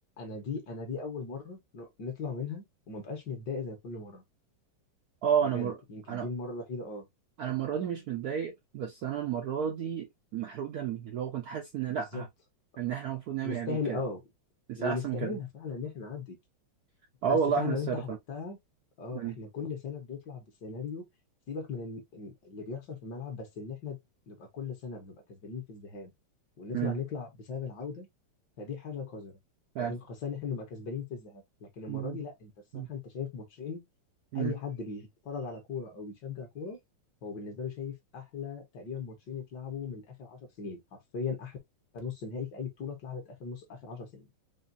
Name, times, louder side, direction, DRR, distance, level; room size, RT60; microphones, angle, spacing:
voice 1, 0.2-4.2 5.4-7.1 11.9-12.2 13.4-14.2 14.8-16.4 17.2-18.6 19.0-21.1 21.5-24.0 24.3-26.1 26.6-28.1 28.6-29.4 29.8-33.8 34.4-36.8 37.2-40.8 41.1-41.6 41.9-44.3, left 5 dB, 60° left, 1.8 m, -38 dB
voice 2, 5.2-5.8 6.1-6.3 7.4-10.1 10.3-12.3 12.8-14.0 14.7-15.4 17.2-18.2 19.1-19.4 26.7-27.0 29.7-29.9 31.9-32.2 32.7-32.9 34.3-34.5, right 8 dB, 70° right, 0.9 m, -31 dB
4.9 x 2.6 x 2.6 m
omnidirectional pair, 2.3 m